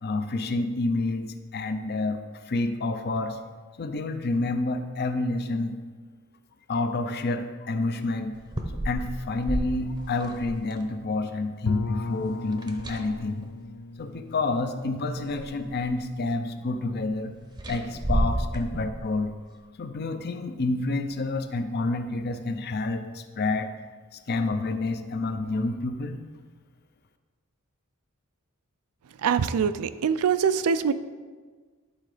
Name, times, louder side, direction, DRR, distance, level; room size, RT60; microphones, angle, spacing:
voice 1, 0.0-3.4 3.8-5.8 6.7-8.3 8.8-13.5 14.0-17.3 17.7-19.3 19.8-23.7 24.1-26.2, left 2 dB, 50° left, 8 dB, 0.6 m, -29 dB
sound 1, 8.3-10.8 12.5-13.5 14.6-14.7 15.1-16.0 17.5-19.2, right 1 dB, 20° right, 0.7 m, -31 dB
Bowed string instrument, 11.7-16.5, left 3 dB, 90° left, 0.5 m, -36 dB
voice 2, 29.2-30.9, right 7 dB, 85° right, 13 dB, 0.4 m, -23 dB
11.0 x 3.7 x 4.9 m, 1.5 s
head